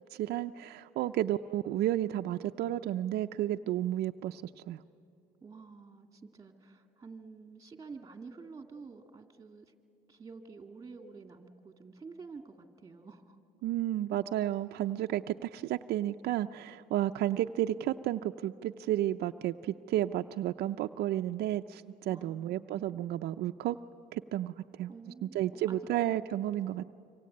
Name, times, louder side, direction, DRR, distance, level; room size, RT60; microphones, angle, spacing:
voice 1, 0.1-4.8 13.6-23.8 24.1-24.9 25.2-26.8, right 13 dB, 75° right, 7 dB, 0.6 m, -32 dB
voice 2, 5.4-9.7 10.1-13.4 22.0-23.0 24.9-25.9, right 4 dB, 20° right, 6 dB, 2.2 m, -49 dB
26.5 x 24.5 x 8.6 m, 2.6 s
cardioid pair, 110°, 17 cm